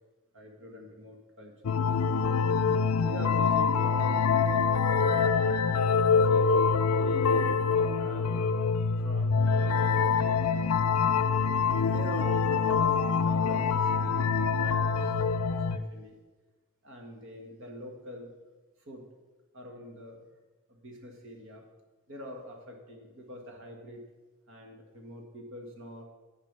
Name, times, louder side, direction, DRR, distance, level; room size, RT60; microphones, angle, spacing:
voice 1, 0.3-1.9 3.0-5.7 6.3-6.5 7.0-8.5 9.0-10.7 11.4-15.1 15.5-16.1 16.8-18.3 18.8-19.1 19.5-20.2 20.7-21.6 22.1-24.0 24.5-26.0, left 1 dB, 55° right, 1 dB, 1.8 m, -44 dB
sound 1, 1.6-15.8, left 5 dB, 80° left, 0.5 m, -25 dB
10.0 x 4.9 x 8.2 m, 1.2 s
head